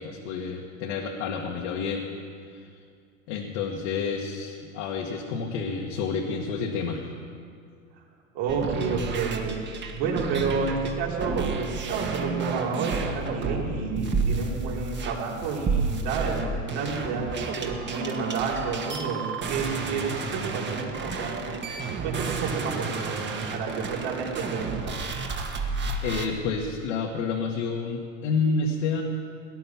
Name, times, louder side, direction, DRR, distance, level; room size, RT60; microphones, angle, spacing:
voice 1, 0.0-2.1 3.3-7.1 26.0-29.0, left 5 dB, 70° left, 0 dB, 1.8 m, -29 dB
voice 2, 8.3-25.0, right 4 dB, 65° right, -3 dB, 4.4 m, -30 dB
sound 1, 8.5-26.3, right 4 dB, 30° right, 1.6 m, -31 dB
18.0 x 11.0 x 6.0 m, 2.3 s
supercardioid pair, 110°, 39 cm